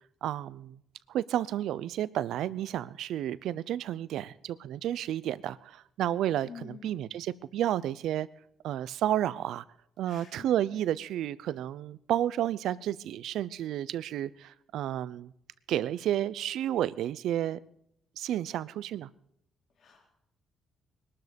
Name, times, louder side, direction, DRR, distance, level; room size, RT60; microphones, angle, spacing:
voice 1, 0.2-0.8 1.1-8.3 8.6-9.6 10.0-15.3 15.7-17.6 18.2-19.1, right 12 dB, 80° right, 18 dB, 0.6 m, -31 dB
voice 2, 6.5-7.0 10.1-10.5 19.8-20.1, left 6 dB, 65° left, 0 dB, 4.0 m, -48 dB
20.5 x 12.5 x 5.2 m, 0.74 s
cardioid pair, 90°, 0 cm